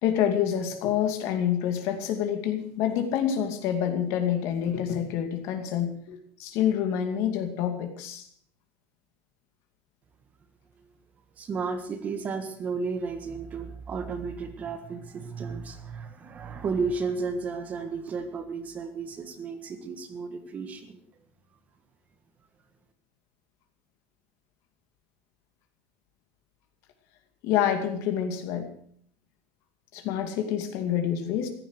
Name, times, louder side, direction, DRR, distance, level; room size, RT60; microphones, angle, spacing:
voice 1, 0.0-8.3 27.4-28.7 29.9-31.5, left 9 dB, 55° left, 7 dB, 2.4 m, -27 dB
voice 2, 11.4-21.0, right 4 dB, 25° right, 8 dB, 1.6 m, -33 dB
15.5 x 11.5 x 6.6 m, 0.63 s
cardioid pair, 160°, 6 cm